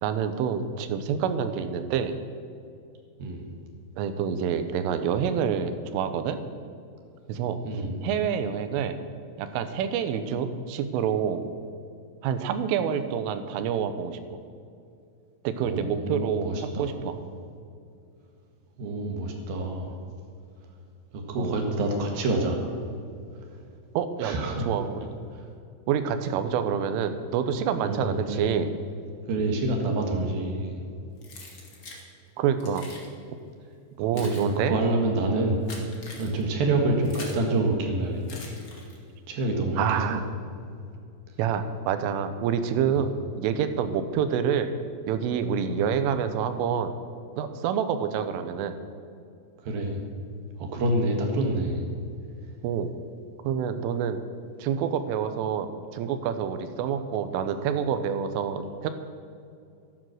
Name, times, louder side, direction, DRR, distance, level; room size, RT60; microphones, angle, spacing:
voice 1, 0.0-2.2 4.0-6.4 7.3-7.6 8.0-9.0 9.4-11.4 12.2-14.4 15.4-17.1 21.4-21.6 23.9-24.3 24.7-25.1 25.9-28.7 32.4-32.9 34.0-34.7 39.8-40.2 41.4-44.7 45.1-46.9 47.4-48.8 52.6-52.9 53.4-54.2 54.6-58.9, right 8 dB, 80° right, 9 dB, 3.3 m, -27 dB
voice 2, 3.2-3.5 7.6-8.0 15.6-17.1 18.8-20.0 21.1-22.7 23.5-23.6 24.2-24.7 25.3-25.5 27.7-28.5 29.3-30.8 31.9-32.0 34.1-35.6 36.2-38.8 39.3-40.2 42.9-43.0 45.7-45.8 49.6-50.0 50.6-51.9, right 2 dB, 60° right, 2 dB, 2.7 m, -27 dB
Keys jangling, 31.2-32.0 32.6-33.1 33.8-37.5 38.2-39.2, left 2 dB, 75° left, 1.0 m, -43 dB
13.5 x 12.0 x 6.4 m, 2.5 s
omnidirectional pair, 5.9 m